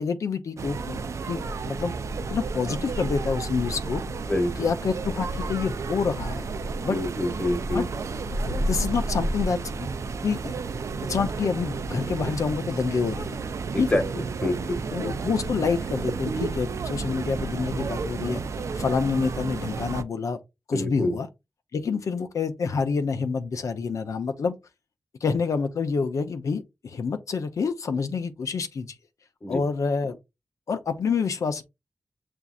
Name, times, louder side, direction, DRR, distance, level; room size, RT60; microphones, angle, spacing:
voice 1, 0.0-1.9 2.3-4.0 4.6-6.5 6.8-7.0 7.7-7.9 8.5-9.9 10.2-10.5 11.1-13.4 13.8-14.0 14.4-14.5 14.9-18.4 18.8-20.4 20.7-21.3 21.7-24.5 25.2-28.9 29.5-30.2 30.7-31.6, left 5 dB, 80° left, 0.6 m, -27 dB
sound 1, 0.6-20.0, right 3 dB, 65° right, 0.4 m, -31 dB
voice 2, 4.3-4.7 6.9-7.9 13.7-14.8 20.7-21.1 29.4-29.6, left 1 dB, 20° left, 1.1 m, -27 dB
7.0 x 2.6 x 2.4 m
wide cardioid pair, 120°, 5 cm